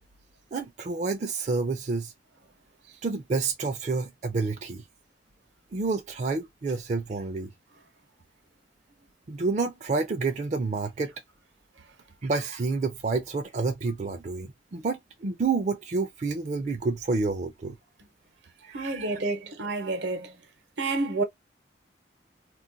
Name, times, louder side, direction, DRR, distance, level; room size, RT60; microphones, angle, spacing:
voice 1, 0.5-2.1 3.0-4.8 5.7-7.5 9.3-11.1 12.2-17.8 18.6-19.3, right 3 dB, 40° right, 0.4 m, -29 dB
voice 2, 18.7-20.3 20.8-21.2, right 3 dB, 80° right, 0.8 m, -29 dB
2.3 x 2.2 x 3.8 m
head